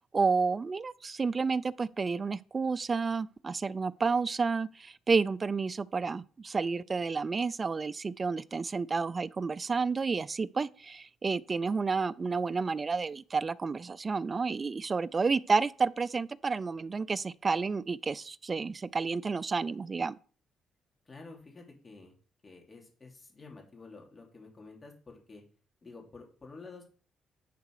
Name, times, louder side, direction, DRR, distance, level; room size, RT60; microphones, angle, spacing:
voice 1, 0.1-20.2, right 4 dB, 35° right, 0.4 m, -30 dB
voice 2, 21.0-22.1 22.4-25.4 25.8-26.8, left 3 dB, 30° left, 3.0 m, -50 dB
10.5 x 4.8 x 4.8 m
cardioid pair, 90°, 0 cm